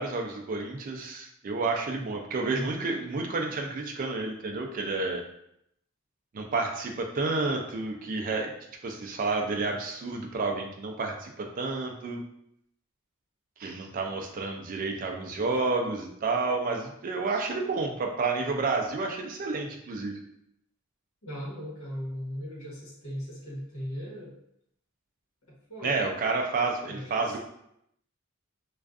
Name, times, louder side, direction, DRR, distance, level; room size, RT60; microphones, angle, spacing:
voice 1, 0.0-5.2 6.3-8.5 8.8-12.2 13.6-20.1 25.8-27.4, right 3 dB, 40° right, 2 dB, 0.3 m, -30 dB
voice 2, 21.2-24.4 25.7-26.0 26.9-27.4, equal, 70° left, -5 dB, 1.0 m, -37 dB
2.4 x 2.3 x 2.4 m, 0.76 s
head